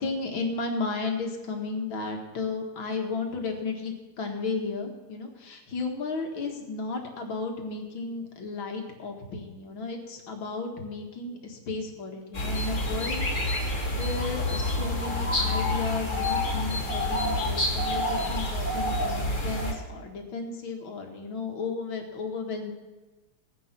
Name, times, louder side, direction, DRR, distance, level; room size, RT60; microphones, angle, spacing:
voice 1, 0.0-22.7, left 3 dB, 65° left, 3 dB, 2.5 m, -34 dB
sound 1, 12.3-19.7, left 1 dB, 35° left, 2.6 m, -28 dB
17.0 x 9.9 x 6.0 m, 1.2 s
omnidirectional pair, 2.4 m